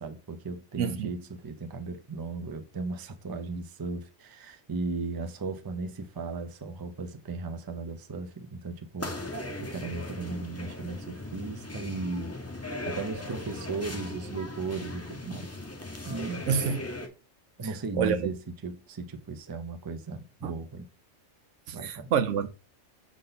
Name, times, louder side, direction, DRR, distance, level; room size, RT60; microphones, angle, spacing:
voice 1, 0.0-12.4 12.6-15.5 16.0-16.4 17.6-20.9 21.7-22.1, right 3 dB, 25° right, 0.5 m, -36 dB
voice 2, 0.8-1.1 16.5-16.8 18.0-18.2 20.4-20.5 21.8-22.5, right 7 dB, 75° right, 1.0 m, -26 dB
sound 1, 9.0-17.1, left 1 dB, 15° left, 0.7 m, -38 dB
6.6 x 3.6 x 4.0 m
omnidirectional pair, 1.3 m